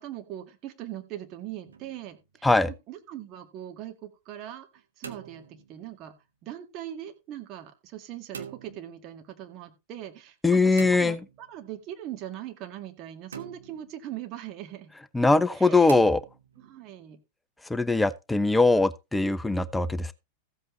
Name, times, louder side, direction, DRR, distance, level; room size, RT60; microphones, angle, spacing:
voice 1, 0.0-6.1 6.4-14.9 15.5-15.9 16.6-17.2, right 12 dB, 35° right, 1.7 m, -41 dB
sound 1, 1.6-2.2 4.7-6.0 8.3-8.9 10.8-11.7 13.3-14.0 15.9-16.8, right 7 dB, 70° right, 1.3 m, -43 dB
voice 2, 10.4-11.2 15.1-16.2 17.7-20.1, left 3 dB, 5° left, 0.5 m, -21 dB
15.0 x 8.0 x 3.1 m
figure-of-eight pair, 90°, 0 cm